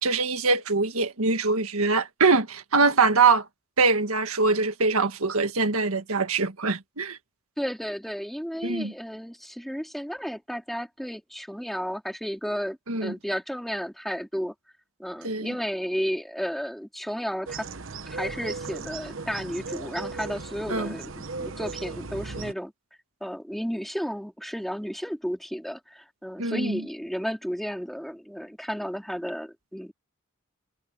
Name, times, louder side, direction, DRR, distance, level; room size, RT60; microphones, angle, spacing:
voice 1, 0.0-3.4 3.8-7.2 8.6-8.9 12.9-13.1 15.2-15.5 20.7-20.9 26.4-26.8, right 4 dB, 85° right, 1.7 m, -23 dB
voice 2, 7.6-14.5 15.0-17.7 18.1-21.1 21.4-22.7 23.2-29.9, equal, ahead, 3.9 m, -33 dB
sound 1, 17.5-22.5, right 4 dB, 65° right, 1.1 m, -36 dB
head